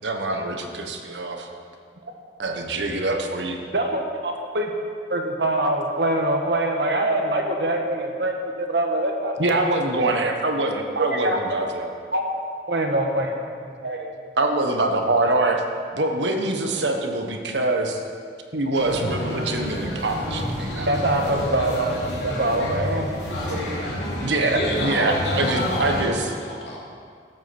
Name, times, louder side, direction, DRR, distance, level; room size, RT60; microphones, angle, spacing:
voice 1, 0.0-1.5 2.4-3.6 9.4-11.9 14.4-15.6 15.9-18.0 18.5-20.9 24.2-26.3, right 2 dB, 90° right, 4 dB, 1.3 m, -24 dB
voice 2, 3.7-4.7 5.1-9.3 10.9-11.4 12.1-12.2 12.7-13.4 13.6-14.1 14.6-14.7 20.9-23.6, right 1 dB, 70° right, 2 dB, 1.5 m, -24 dB
sound 1, 18.7-26.1, equal, 85° left, 3.2 m, -29 dB
voice 3, 24.5-26.8, left 1 dB, 70° left, -5 dB, 3.2 m, -29 dB
13.5 x 8.3 x 6.1 m, 2.2 s
head